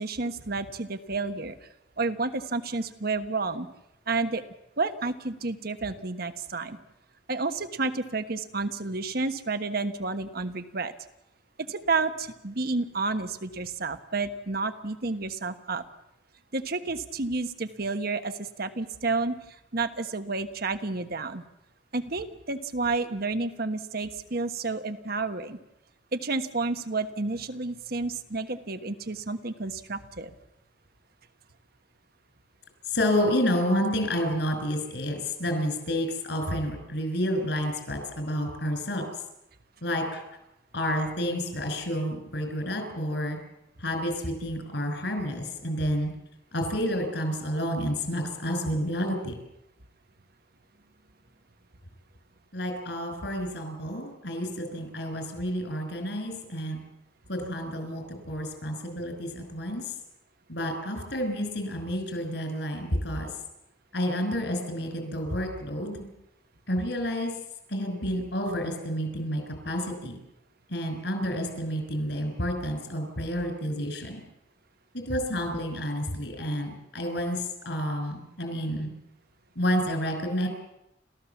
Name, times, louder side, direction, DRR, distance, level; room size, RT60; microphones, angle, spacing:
voice 1, 0.0-1.6 2.0-3.7 4.1-4.4 4.8-6.8 7.3-10.9 11.6-15.8 16.5-21.4 21.9-25.6 26.1-30.3, right 3 dB, 60° right, 10 dB, 1.3 m, -30 dB
voice 2, 32.8-39.2 39.8-40.2 40.7-43.4 43.8-46.1 46.5-49.3 52.5-56.8 57.3-60.0 60.5-63.3 63.9-66.1 66.7-67.3 67.7-70.2 70.7-74.2 75.1-78.9 79.5-80.5, equal, 70° left, 6 dB, 6.3 m, -30 dB
30.0 x 14.5 x 7.2 m, 0.87 s
head